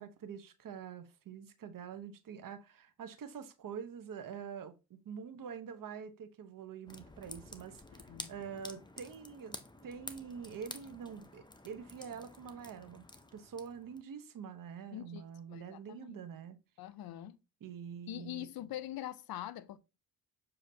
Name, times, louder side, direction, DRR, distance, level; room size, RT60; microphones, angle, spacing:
voice 1, 0.0-9.6 9.8-13.0 13.3-16.6 17.6-18.5, right 7 dB, 55° right, 0.8 m, -46 dB
sound 1, 6.9-14.0, left 2 dB, 10° left, 0.7 m, -50 dB
voice 2, 14.9-15.2 15.5-16.2 16.8-17.4 18.1-19.8, left 13 dB, 65° left, 0.5 m, -43 dB
6.6 x 2.8 x 2.7 m
supercardioid pair, 50°, 39 cm